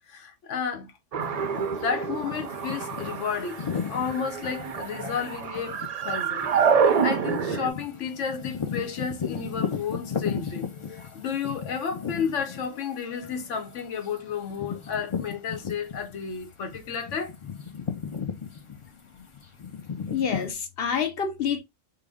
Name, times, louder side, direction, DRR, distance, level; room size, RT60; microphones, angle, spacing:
voice 1, 0.1-0.9 1.4-3.6 3.9-5.8 6.0-17.3, left 6 dB, 75° left, 1.1 m, -32 dB
sound 1, 1.1-7.7, right 6 dB, 55° right, 0.4 m, -27 dB
sound 2, 1.2-16.3 16.7-20.5, left 6 dB, 40° left, 0.4 m, -36 dB
voice 2, 20.1-21.6, left 7 dB, 60° left, 0.8 m, -27 dB
3.7 x 2.2 x 3.4 m
omnidirectional pair, 1.3 m